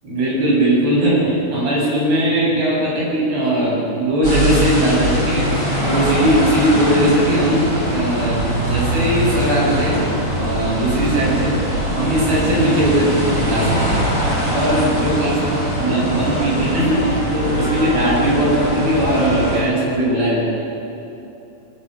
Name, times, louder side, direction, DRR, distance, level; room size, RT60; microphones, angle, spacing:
voice 1, 0.0-10.0 10.4-20.4, right 1 dB, 85° right, -5 dB, 9.6 m, -19 dB
sound 1, 4.2-19.6, right 1 dB, 20° right, 7.2 m, -21 dB
24.5 x 23.5 x 6.5 m, 2.9 s
omnidirectional pair, 4.4 m